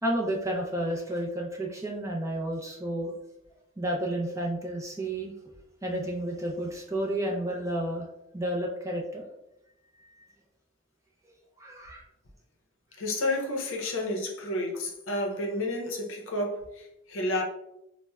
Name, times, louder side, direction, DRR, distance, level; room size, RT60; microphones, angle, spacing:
voice 1, 0.0-3.1 3.8-5.3 5.8-8.1 8.3-9.3 11.6-12.0, right 1 dB, 15° right, -1 dB, 0.4 m, -31 dB
voice 2, 13.0-17.4, left 1 dB, 70° left, 1 dB, 0.6 m, -31 dB
4.1 x 2.0 x 2.3 m, 0.87 s
head